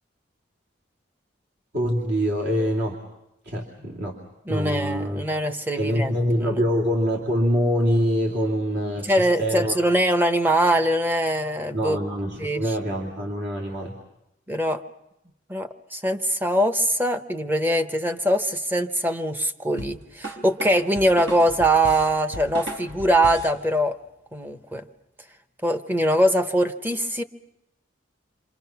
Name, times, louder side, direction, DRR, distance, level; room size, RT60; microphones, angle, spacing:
voice 1, 1.7-3.0 3.4-4.2 4.5-5.3 5.8-9.8 11.7-14.0, equal, 60° right, -2 dB, 2.7 m, -25 dB
voice 2, 4.5-6.6 9.0-12.0 12.4-12.6 14.5-14.8 15.5-24.0 24.3-24.8 25.6-27.2, right 1 dB, 10° right, 8 dB, 0.9 m, -22 dB
sound 1, 19.8-23.6, right 1 dB, 80° right, 4.1 m, -36 dB
28.5 x 25.5 x 5.9 m, 0.88 s
head